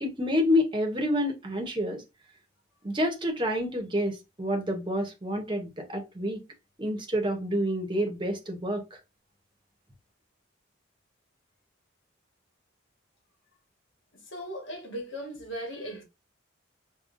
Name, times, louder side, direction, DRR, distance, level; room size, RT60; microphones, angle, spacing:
voice 1, 0.0-2.0 2.8-6.4 6.8-9.0, equal, 25° right, 0.7 m, -28 dB
voice 2, 14.3-16.0, equal, 85° left, 1.3 m, -37 dB
5.1 x 2.2 x 2.5 m
head